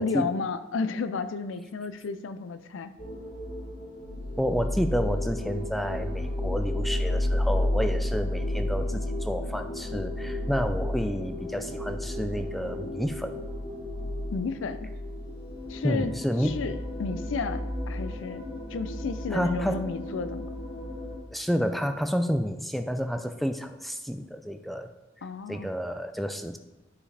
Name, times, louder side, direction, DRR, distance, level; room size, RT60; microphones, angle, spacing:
voice 1, 0.0-2.9 14.3-14.9 15.7-16.1 16.4-18.4 18.7-20.5 25.2-25.7, left 4 dB, 75° left, 12 dB, 0.4 m, -32 dB
sound 1, 3.0-21.2, left 1 dB, 45° left, 2.5 m, -32 dB
voice 2, 4.4-13.3 15.8-16.7 19.3-19.8 21.3-24.9 25.5-26.6, equal, ahead, 8 dB, 0.3 m, -30 dB
11.0 x 4.8 x 3.3 m, 1.1 s
head